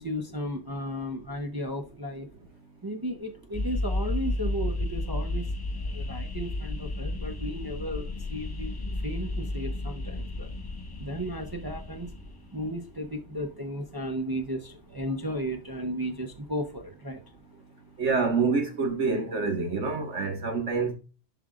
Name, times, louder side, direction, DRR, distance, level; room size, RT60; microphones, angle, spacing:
voice 1, 0.0-2.3 2.8-5.5 5.7-10.5 11.0-12.1 12.5-17.4, equal, 25° right, 0.6 m, -34 dB
sound 1, 3.5-12.8, left 2 dB, 30° left, 0.5 m, -33 dB
voice 2, 18.0-21.0, right 4 dB, 80° right, 1.9 m, -27 dB
11.0 x 5.3 x 2.4 m
omnidirectional pair, 1.2 m